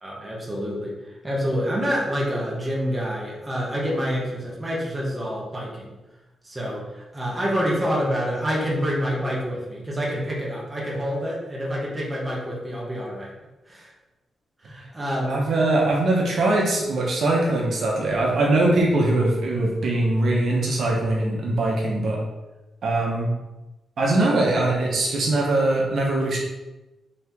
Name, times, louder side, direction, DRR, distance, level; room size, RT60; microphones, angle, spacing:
voice 1, 0.0-6.0 6.4-13.3 13.7-13.9 14.6-15.4, equal, 15° right, -4 dB, 0.9 m, -27 dB
voice 2, 15.3-22.2 22.8-23.3 24.0-26.4, right 2 dB, 55° right, -2 dB, 1.0 m, -21 dB
4.2 x 3.0 x 3.5 m, 1.0 s
wide cardioid pair, 160°, 0 cm